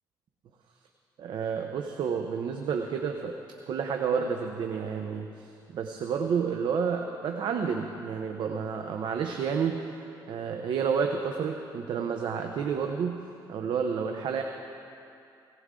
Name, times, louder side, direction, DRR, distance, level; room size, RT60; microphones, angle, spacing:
voice 1, 1.2-3.4 3.7-14.4, right 6 dB, 70° right, 4 dB, 0.9 m, -30 dB
18.0 x 17.0 x 3.8 m, 2.6 s
cardioid pair, 110°, 8 cm